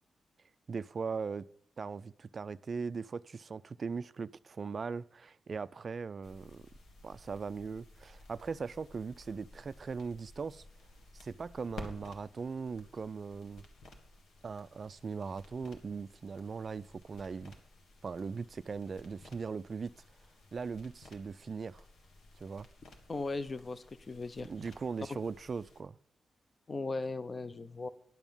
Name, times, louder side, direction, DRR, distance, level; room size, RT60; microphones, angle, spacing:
voice 1, 0.7-1.5 1.8-6.6 7.0-10.6 11.1-13.7 14.4-17.5 18.0-19.9 20.5-21.8 22.4-22.7 24.4-26.0, right 5 dB, 40° right, 0.3 m, -39 dB
sound 1, 6.2-25.8, left 2 dB, 80° left, 1.7 m, -55 dB
voice 2, 23.1-24.5 26.7-27.9, left 3 dB, 30° left, 0.5 m, -37 dB
10.5 x 7.1 x 5.5 m
wide cardioid pair, 140°, 0 cm